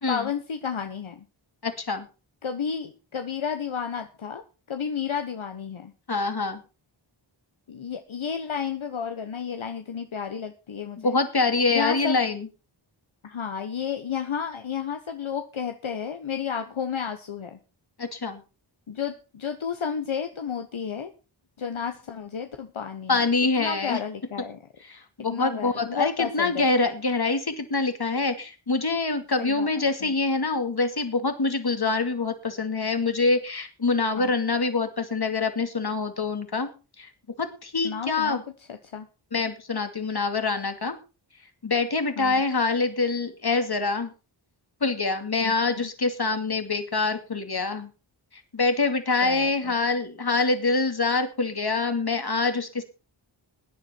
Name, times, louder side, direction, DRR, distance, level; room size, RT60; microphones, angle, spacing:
voice 1, 0.1-1.3 2.4-4.4 4.7-5.9 7.7-11.2 11.7-12.2 13.2-17.6 18.9-21.1 21.6-24.6 25.3-26.7 29.4-29.7 30.0-30.1 34.1-34.3 37.8-38.4 38.7-39.1 42.2-42.4 45.4-45.9 49.2-49.7, left 7 dB, 75° left, 7 dB, 1.2 m, -32 dB
voice 2, 1.6-2.1 6.1-6.6 11.0-12.5 18.0-18.4 23.1-24.0 24.8-36.7 37.0-37.1 37.4-38.4 39.3-41.0 41.6-44.1 44.8-47.9 48.5-52.8, left 3 dB, 50° left, 7 dB, 2.5 m, -25 dB
16.5 x 10.0 x 4.4 m, 0.32 s
wide cardioid pair, 70°, 48 cm